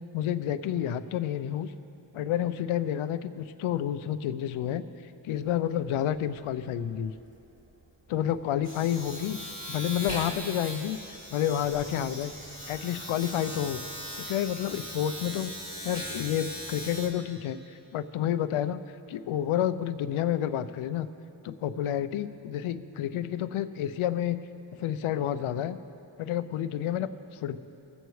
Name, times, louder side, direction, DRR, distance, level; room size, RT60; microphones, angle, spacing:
voice 1, 0.1-1.7 2.1-4.8 5.2-7.1 8.1-9.4 9.7-12.3 12.7-13.8 14.2-15.5 15.8-18.8 19.1-21.1 21.4-24.4 24.8-25.8 26.2-27.6, left 10 dB, 90° left, 12 dB, 0.6 m, -30 dB
Domestic sounds home sounds, 5.3-5.5 5.8-17.1, equal, 25° right, 2.8 m, -40 dB
22.0 x 7.9 x 3.2 m, 2.9 s
cardioid pair, 110°, 48 cm